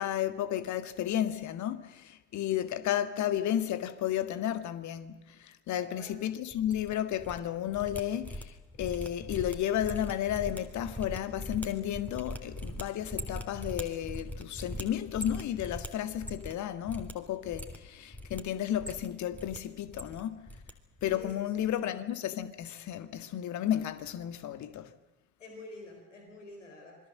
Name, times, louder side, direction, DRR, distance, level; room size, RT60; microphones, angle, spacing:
voice 1, 0.0-20.5 21.0-24.9, left 11 dB, 50° left, 1.8 m, -33 dB
voice 2, 5.8-6.1 21.1-21.3 25.4-27.0, left 2 dB, 80° left, 4.3 m, -48 dB
sound 1, 6.5-7.4 7.7-16.6 16.8-17.1 17.4-18.4 18.7-19.6 19.8-20.7 21.0-21.3 21.6-21.8, left 1 dB, 5° left, 3.5 m, -41 dB
27.5 x 22.0 x 7.6 m
figure-of-eight pair, 50°, 36 cm